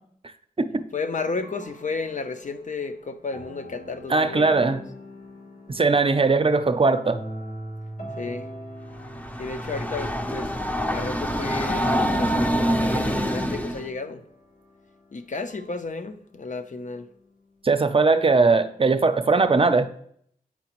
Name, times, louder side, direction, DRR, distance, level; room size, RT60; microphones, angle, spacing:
voice 1, 0.9-4.8 8.2-8.5 9.4-10.5 10.9-14.2 15.1-17.1, left 4 dB, 55° left, 0.7 m, -33 dB
sound 1, 1.3-17.4, equal, 85° left, 1.4 m, -42 dB
voice 2, 4.1-4.8 5.7-7.2 17.6-19.9, right 3 dB, 40° right, 0.6 m, -20 dB
Train, 9.0-13.9, equal, 10° left, 0.6 m, -25 dB
8.6 x 4.9 x 3.0 m
cardioid pair, 45°, 15 cm